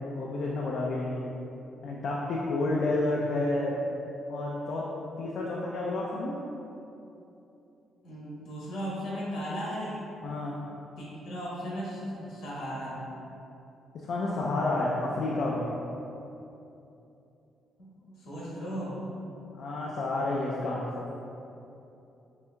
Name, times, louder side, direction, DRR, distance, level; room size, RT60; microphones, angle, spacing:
voice 1, 0.0-1.2 1.8-3.8 4.3-4.9 5.2-6.4 10.2-10.6 13.9-15.7 19.5-21.1, left 2 dB, 70° left, -4 dB, 0.4 m, -30 dB
voice 2, 8.0-10.1 11.0-13.0 17.8-19.4, equal, 85° left, -7 dB, 1.2 m, -36 dB
4.5 x 3.3 x 2.2 m, 2.9 s
cardioid pair, 90°, 0 cm